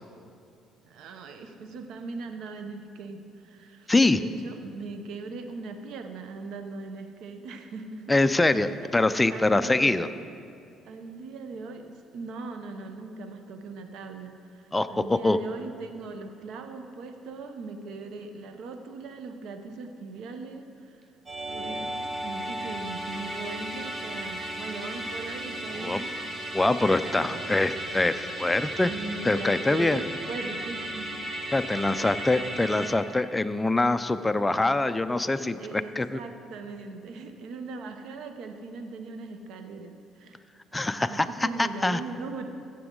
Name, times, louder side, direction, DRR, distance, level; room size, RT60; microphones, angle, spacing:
voice 1, 0.8-8.0 8.3-8.6 9.3-10.0 10.8-21.1 21.4-26.1 27.1-27.7 28.8-31.3 31.9-32.3 35.4-40.4 41.0-42.5, right 3 dB, 70° right, 6 dB, 0.7 m, -40 dB
voice 2, 3.9-4.2 8.1-10.1 14.7-15.4 25.8-26.0 26.5-28.9 29.2-30.0 31.5-36.2 40.7-42.0, left 2 dB, 10° left, 11 dB, 0.4 m, -24 dB
Musical instrument, 21.3-32.9, right 1 dB, 30° right, 1.6 m, -35 dB
15.0 x 7.0 x 3.8 m, 2.5 s
cardioid pair, 100°, 0 cm